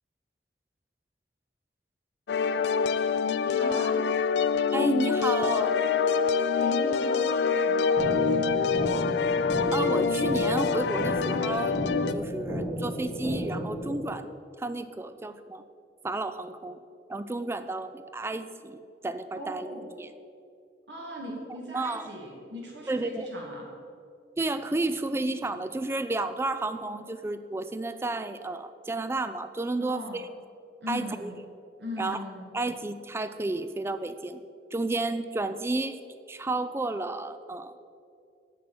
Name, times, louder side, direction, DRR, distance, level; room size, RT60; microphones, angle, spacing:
sound 1, 2.3-12.1, left 5 dB, 70° left, 0.4 m, -25 dB
voice 1, 3.4-3.9 6.5-8.7 19.3-19.9 20.9-23.7 29.9-30.2 30.8-31.4 31.8-32.4, equal, 85° right, -2 dB, 2.1 m, -38 dB
voice 2, 4.7-5.7 9.7-11.8 12.1-14.3 14.6-15.6 16.0-16.8 17.1-20.1 21.7-22.1 22.9-23.3 24.4-30.3 30.9-31.3 32.0-32.2 32.5-34.4 34.7-36.0 36.3-37.9, right 2 dB, 15° right, 11 dB, 0.3 m, -31 dB
sound 2, 8.0-14.0, equal, ahead, 2.6 m, -33 dB
8.7 x 5.4 x 7.8 m, 2.4 s
head